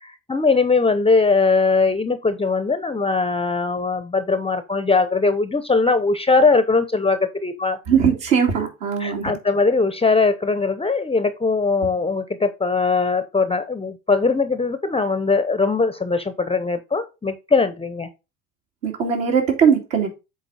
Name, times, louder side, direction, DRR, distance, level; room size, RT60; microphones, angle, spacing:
voice 1, 0.0-7.8 9.0-18.1, left 4 dB, 15° left, 0.6 m, -20 dB
voice 2, 7.9-9.3 18.8-20.1, right 7 dB, 65° right, 2.6 m, -19 dB
8.1 x 3.8 x 4.1 m
hypercardioid pair, 70°, 43 cm